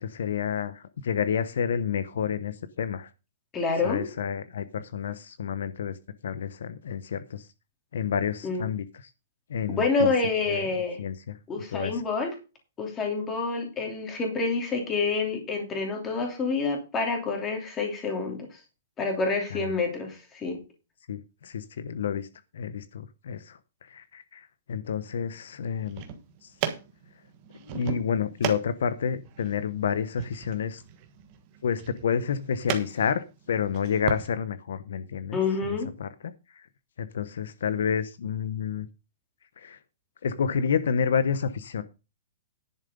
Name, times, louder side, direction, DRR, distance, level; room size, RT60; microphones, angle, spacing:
voice 1, 0.0-3.1 3.8-6.0 6.2-7.5 7.9-8.8 9.5-10.1 10.5-10.7 11.0-11.4 11.7-12.0 19.5-19.7 21.1-22.3 22.5-26.0 26.4-26.5 27.6-30.8 31.6-36.7 37.0-38.9 39.6-39.8 40.2-41.8, left 7 dB, 65° left, 13 dB, 0.9 m, -29 dB
voice 2, 3.5-4.0 8.4-8.7 9.7-11.0 11.5-12.3 12.8-18.5 19.0-20.6 35.3-35.9, left 4 dB, 10° left, 2 dB, 2.9 m, -28 dB
sound 1, 25.7-34.3, right 9 dB, 25° right, 1.3 m, -37 dB
10.5 x 7.2 x 5.3 m, 0.30 s
hypercardioid pair, 175°, 0 cm